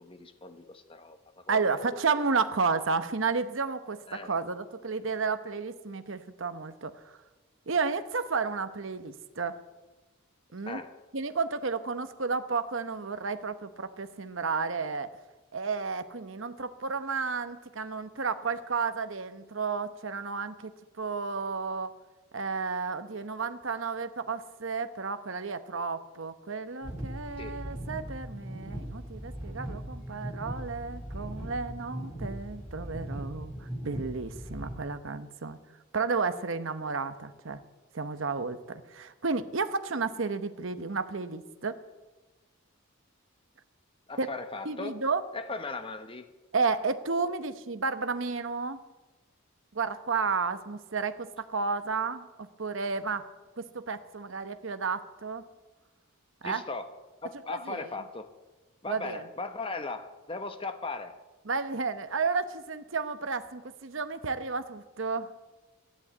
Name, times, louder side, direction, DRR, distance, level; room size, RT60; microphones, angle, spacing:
voice 1, 0.0-1.9 4.1-4.3 10.6-10.9 27.4-27.7 44.1-45.0 45.3-46.3 56.4-56.9 57.2-58.3 58.8-61.2, left 3 dB, 25° left, 8 dB, 1.1 m, -38 dB
voice 2, 1.5-7.2 7.7-9.6 10.5-10.8 11.1-15.1 15.5-21.9 22.3-35.6 35.9-37.6 37.9-41.8 44.2-44.3 44.6-45.2 46.5-48.8 49.7-53.3 53.6-55.4 56.4-56.6 57.5-57.9 58.9-59.2 61.5-65.3, right 4 dB, 60° right, 10 dB, 0.9 m, -32 dB
sound 1, 26.8-34.7, right 1 dB, 5° right, 6.9 m, -39 dB
13.5 x 10.5 x 8.4 m, 1.1 s
head